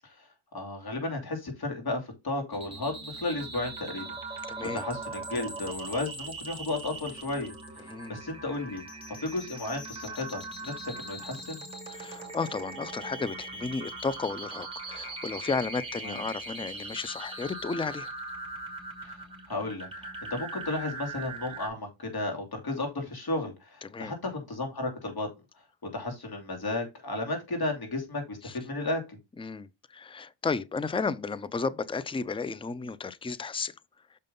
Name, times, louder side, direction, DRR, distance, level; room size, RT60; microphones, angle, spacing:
voice 1, 0.5-8.8 9.2-11.6 16.0-16.2 19.0-19.2 19.5-25.3 25.9-28.4 28.6-29.2, left 2 dB, 50° left, 2.9 m, -34 dB
sound 1, 2.5-21.7, right 3 dB, 10° right, 2.7 m, -40 dB
voice 2, 4.5-4.8 7.9-8.2 11.9-18.1 23.8-24.1 28.4-28.6 29.4-29.7 29.9-33.7, left 4 dB, 10° left, 0.4 m, -33 dB
6.6 x 5.2 x 3.8 m
cardioid pair, 90°, 47 cm